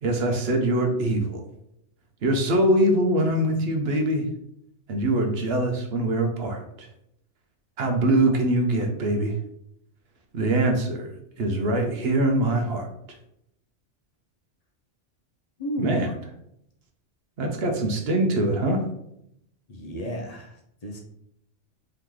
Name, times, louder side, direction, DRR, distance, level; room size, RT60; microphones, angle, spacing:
voice 1, 0.0-1.4 2.2-4.3 4.9-6.9 7.8-9.4 10.3-13.2 15.8-16.1 17.4-18.9, right 1 dB, 60° right, 4 dB, 0.9 m, -23 dB
voice 2, 15.6-16.1 19.7-21.0, equal, 40° left, 1 dB, 0.7 m, -33 dB
3.8 x 3.0 x 3.6 m, 0.76 s
omnidirectional pair, 1.2 m